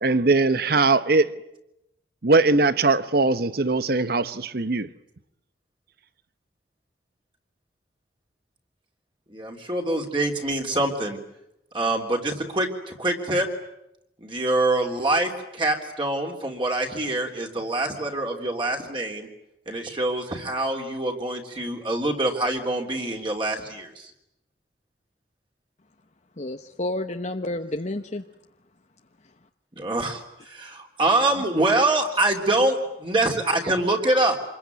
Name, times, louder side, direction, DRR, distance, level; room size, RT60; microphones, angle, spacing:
voice 1, 0.0-1.3 2.2-4.9, right 3 dB, 55° right, 1.0 m, -20 dB
voice 2, 9.3-11.2 11.7-13.5 14.2-19.3 19.6-24.1 29.7-34.4, right 2 dB, 30° right, 3.4 m, -25 dB
voice 3, 26.4-28.2 29.2-29.3, left 1 dB, 40° left, 1.1 m, -30 dB
27.0 x 22.0 x 9.5 m
head